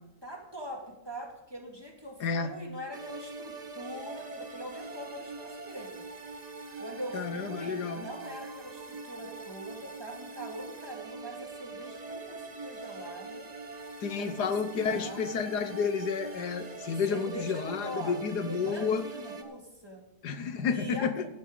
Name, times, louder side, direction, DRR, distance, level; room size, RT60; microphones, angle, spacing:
voice 1, 0.2-6.0 6.8-13.5 14.2-14.6 14.9-15.3 17.1-20.0 20.7-21.3, equal, 15° right, 0 dB, 2.2 m, -42 dB
voice 2, 2.2-2.5 7.1-8.0 14.0-19.0 20.2-21.3, left 6 dB, 80° left, 9 dB, 1.7 m, -31 dB
sound 1, 2.9-19.4, right 3 dB, 30° right, 0.9 m, -43 dB
15.5 x 11.0 x 3.9 m, 0.96 s
omnidirectional pair, 1.7 m